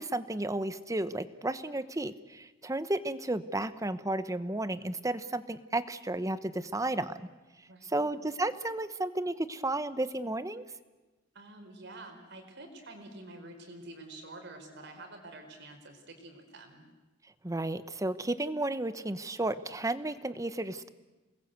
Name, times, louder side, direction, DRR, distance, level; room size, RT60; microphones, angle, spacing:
voice 1, 0.0-7.1 7.8-10.6 17.4-20.9, right 2 dB, 15° right, 13 dB, 1.0 m, -33 dB
voice 2, 7.7-8.1 11.3-16.9, right 2 dB, 65° right, 5 dB, 4.9 m, -48 dB
28.5 x 20.5 x 8.1 m, 1.2 s
head